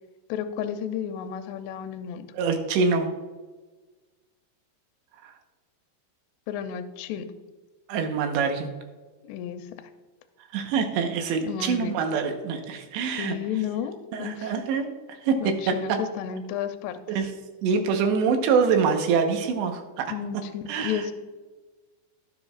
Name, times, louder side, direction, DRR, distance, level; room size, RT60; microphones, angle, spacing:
voice 1, 0.3-2.3 6.5-7.3 9.2-9.7 11.5-12.0 13.2-14.5 15.4-17.0 20.1-21.1, left 9 dB, 85° left, 7 dB, 2.7 m, -32 dB
voice 2, 2.3-3.1 5.2-5.3 7.9-8.7 10.5-13.4 14.1-16.0 17.1-17.3 17.6-20.1 20.7-21.0, right 5 dB, 85° right, 5 dB, 3.3 m, -25 dB
17.0 x 7.4 x 2.4 m, 1.3 s
omnidirectional pair, 5.0 m